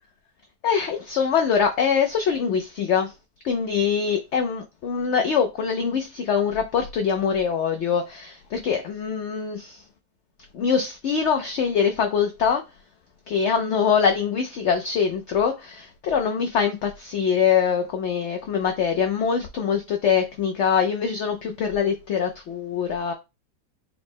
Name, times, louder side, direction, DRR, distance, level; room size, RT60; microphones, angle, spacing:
voice 1, 0.6-3.1 3.4-9.8 10.5-12.6 13.3-23.1, left 7 dB, 85° left, 0.6 m, -23 dB
4.2 x 2.0 x 4.2 m
omnidirectional pair, 1.7 m